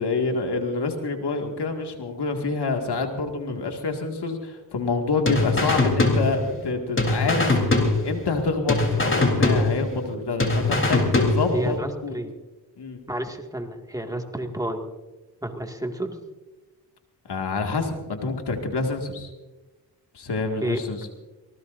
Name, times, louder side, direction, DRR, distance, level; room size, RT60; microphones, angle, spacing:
voice 1, 0.0-11.8 12.0-12.2 12.8-13.0 17.2-19.3 20.1-21.1, left 3 dB, 70° left, 4 dB, 2.2 m, -27 dB
sound 1, 5.3-6.7 7.0-8.4 8.7-10.1 10.4-11.7, left 2 dB, 30° left, 3.8 m, -22 dB
voice 2, 11.5-12.3 13.1-14.8 15.4-16.2 20.6-20.8, right 1 dB, 10° right, 3 dB, 2.1 m, -30 dB
24.5 x 19.0 x 2.7 m, 1.2 s
cardioid pair, 65°, 42 cm